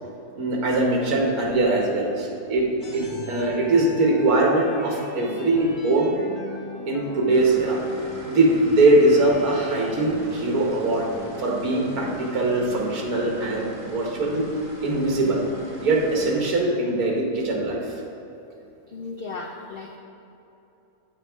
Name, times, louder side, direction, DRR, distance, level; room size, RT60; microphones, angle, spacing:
voice 1, 0.3-2.7 2.9-6.2 6.9-7.8 8.3-11.1 11.4-14.5 14.8-15.4 15.8-18.0, right 2 dB, 80° right, -1 dB, 1.7 m, -21 dB
sound 1, 2.8-10.0, left 2 dB, 80° left, 2.2 m, -41 dB
sound 2, 7.3-16.4, right 1 dB, 55° right, 2.0 m, -41 dB
voice 2, 18.9-20.0, left 3 dB, 60° left, 1 dB, 0.6 m, -35 dB
8.2 x 8.0 x 3.4 m, 3.0 s
omnidirectional pair, 1.6 m